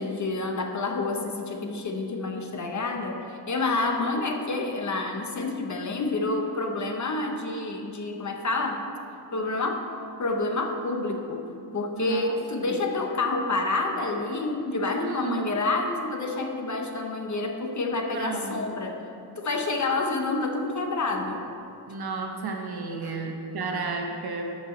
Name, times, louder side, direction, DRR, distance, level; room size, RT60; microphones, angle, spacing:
voice 1, 0.0-8.9 9.3-9.9 10.2-19.0 19.4-21.4 23.0-23.2, left 3 dB, 40° left, 3 dB, 0.8 m, -28 dB
voice 2, 12.0-12.7 15.0-15.5 18.1-18.6 21.9-24.4, right 4 dB, 55° right, 2 dB, 1.1 m, -32 dB
13.0 x 5.6 x 4.3 m, 2.6 s
wide cardioid pair, 165°, 44 cm